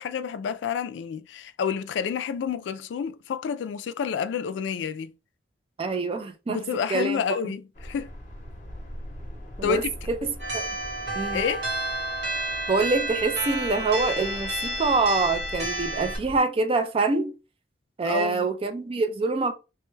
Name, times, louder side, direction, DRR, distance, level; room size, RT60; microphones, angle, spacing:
voice 1, 0.0-5.1 6.5-8.1 9.6-9.9 11.3-11.6 18.0-18.5, left 7 dB, 75° left, 0.3 m, -29 dB
voice 2, 5.8-6.6 6.9-7.2 9.6-10.7 11.2-11.4 12.7-17.3 18.0-19.5, right 3 dB, 30° right, 0.3 m, -25 dB
sound 1, 7.7-16.4, equal, 45° left, 0.8 m, -41 dB
sound 2, 10.4-16.2, right 1 dB, 80° right, 1.6 m, -31 dB
3.2 x 2.2 x 3.1 m
head